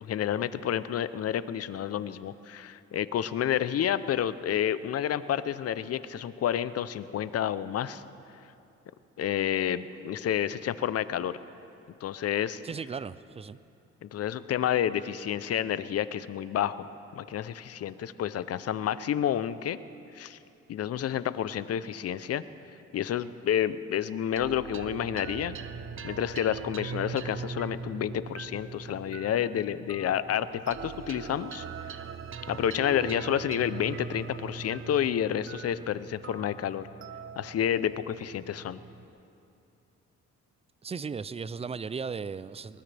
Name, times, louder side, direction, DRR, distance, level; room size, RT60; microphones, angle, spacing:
voice 1, 0.0-8.0 9.2-11.4 12.0-12.6 14.0-16.9 17.1-19.8 20.1-20.4 20.7-22.4 22.9-25.6 26.0-31.6 32.5-36.9 37.4-38.8, left 10 dB, 55° left, 15 dB, 0.6 m, -29 dB
voice 2, 12.6-13.6 40.8-42.8, right 5 dB, 20° right, 17 dB, 0.4 m, -36 dB
sound 1, 24.4-39.1, right 6 dB, 45° right, 0.8 m, -41 dB
21.0 x 19.5 x 3.4 m, 2.7 s
cardioid pair, 90°, 30 cm